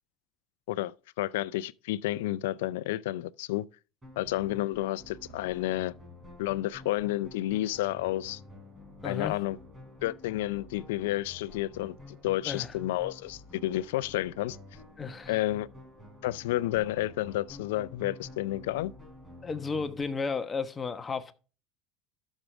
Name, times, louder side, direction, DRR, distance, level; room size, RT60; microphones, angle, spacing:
voice 1, 0.7-3.6 4.2-5.9 6.4-8.4 9.0-9.6 10.0-14.6 15.3-15.7 16.2-18.9, left 15 dB, 85° left, 0.4 m, -31 dB
sound 1, 4.0-20.0, left 2 dB, 15° right, 4.5 m, -49 dB
voice 2, 9.0-9.4 12.5-12.8 15.0-15.4 19.4-21.3, left 5 dB, 25° left, 1.1 m, -33 dB
12.0 x 6.4 x 3.4 m
supercardioid pair, 100°, 0 cm